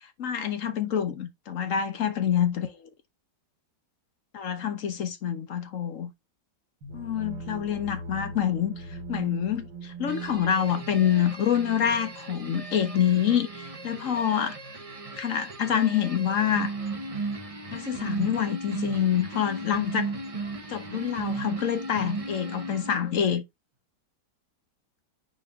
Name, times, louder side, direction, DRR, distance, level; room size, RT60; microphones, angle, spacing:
voice 1, 0.2-2.8 4.3-6.1 6.9-14.6 15.1-16.7 17.7-20.1 20.7-23.4, left 9 dB, 55° left, 1.1 m, -26 dB
sound 1, 6.8-14.5, right 3 dB, 85° right, 2.2 m, -41 dB
sound 2, 10.1-23.2, right 3 dB, 30° right, 0.8 m, -36 dB
6.2 x 4.5 x 3.4 m
omnidirectional pair, 1.9 m